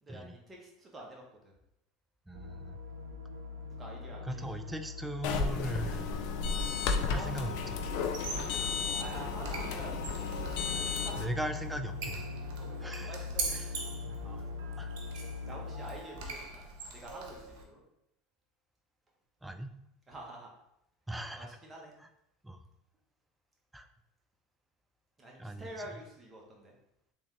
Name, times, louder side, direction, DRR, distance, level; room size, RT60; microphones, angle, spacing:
voice 1, 0.0-1.5 3.6-4.7 7.1-7.8 9.0-10.0 10.5-11.3 12.6-13.8 15.5-16.6 16.9-17.8 20.1-20.5 21.3-21.9 25.2-26.7, right 1 dB, 25° right, -2 dB, 1.4 m, -48 dB
voice 2, 2.3-2.8 4.2-6.1 7.1-7.9 8.6-8.7 11.2-12.2 12.8-13.1 13.5-13.7 14.1-14.5 14.8-14.9 19.4-19.7 21.1-21.5 22.4-22.6 23.7-23.9 25.4-25.7, right 1 dB, 10° right, 8 dB, 0.4 m, -39 dB
sound 1, 2.3-15.9, left 4 dB, 80° right, 0.5 m, -42 dB
sound 2, 5.2-11.3, left 5 dB, 65° left, 0.5 m, -33 dB
Squeak, 8.0-17.6, right 3 dB, 65° right, 0.8 m, -43 dB
3.6 x 3.4 x 3.2 m, 0.80 s
hypercardioid pair, 80°, 0 cm